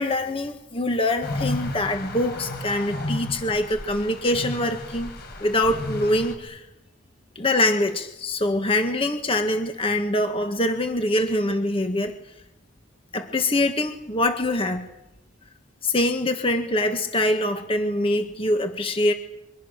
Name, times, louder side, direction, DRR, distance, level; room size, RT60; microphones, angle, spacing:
voice 1, 0.0-5.1 5.4-6.7 7.3-12.2 13.1-14.9 15.8-19.1, left 1 dB, 25° left, 6 dB, 1.7 m, -24 dB
sound 1, 1.2-6.4, left 2 dB, 50° left, 5.5 m, -33 dB
29.5 x 24.0 x 6.6 m, 0.90 s
head